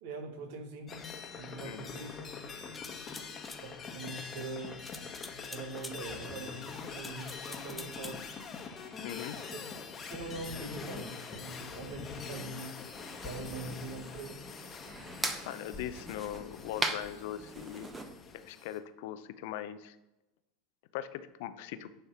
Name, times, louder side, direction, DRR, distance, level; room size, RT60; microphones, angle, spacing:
voice 1, 0.0-2.3 3.6-4.8 5.5-8.2 9.4-9.7 10.1-14.4, right 3 dB, 65° right, 6 dB, 1.4 m, -43 dB
sound 1, 0.9-18.8, left 5 dB, 30° left, 1.2 m, -44 dB
sound 2, 2.7-3.6 4.8-6.0 6.9-8.2, left 2 dB, 10° left, 0.9 m, -47 dB
voice 2, 9.0-9.3 15.4-17.9 18.3-20.0 20.9-21.9, left 11 dB, 65° left, 11 dB, 0.6 m, -40 dB
sound 3, 12.9-18.1, right 2 dB, 15° right, 1.1 m, -40 dB
9.9 x 3.4 x 5.8 m, 0.93 s
hypercardioid pair, 85°, 0 cm